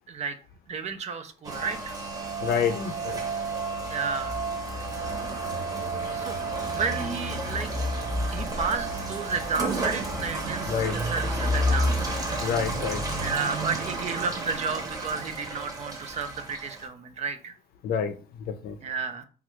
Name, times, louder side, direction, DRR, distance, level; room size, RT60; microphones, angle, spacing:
voice 1, 0.7-2.0 3.9-4.4 5.5-5.7 6.1-6.4 6.7-7.7 8.3-12.2 13.2-17.5 18.8-19.2, right 5 dB, 40° right, 9 dB, 0.4 m, -32 dB
Rain, 1.4-16.9, right 1 dB, 20° right, 0.9 m, -30 dB
voice 2, 2.4-3.2 10.7-11.0 12.4-13.0 17.8-18.1 18.5-18.8, left 7 dB, 65° left, 9 dB, 0.5 m, -28 dB
3.1 x 2.4 x 3.0 m, 0.37 s
cardioid pair, 110°, 17 cm